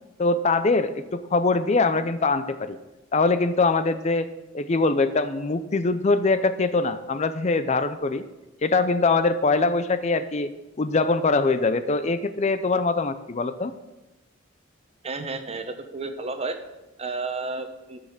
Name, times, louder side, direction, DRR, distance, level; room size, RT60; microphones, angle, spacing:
voice 1, 0.2-2.8 3.1-4.3 4.5-8.2 8.6-10.5 10.8-13.7, left 3 dB, 35° left, 11 dB, 0.5 m, -23 dB
voice 2, 15.0-16.6 17.0-18.0, right 3 dB, 30° right, 8 dB, 1.0 m, -32 dB
13.5 x 6.5 x 7.2 m, 1.0 s
head